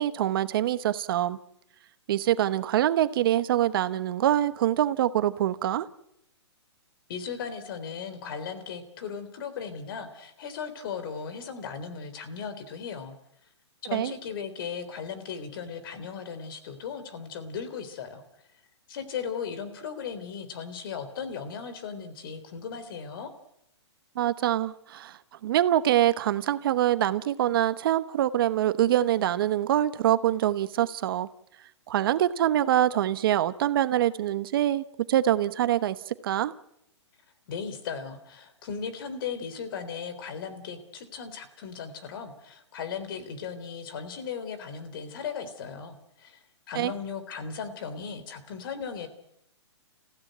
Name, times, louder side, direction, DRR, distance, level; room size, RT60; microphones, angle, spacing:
voice 1, 0.0-1.4 2.1-5.9 13.9-14.1 24.2-25.1 25.4-31.3 31.9-36.0 36.2-36.5 46.8-46.9, right 12 dB, 50° right, 13 dB, 1.0 m, -24 dB
voice 2, 7.1-13.2 13.8-18.2 18.9-23.3 37.5-49.1, left 6 dB, 50° left, 10 dB, 3.6 m, -37 dB
29.5 x 16.0 x 9.3 m, 0.83 s
hypercardioid pair, 150°, 15 cm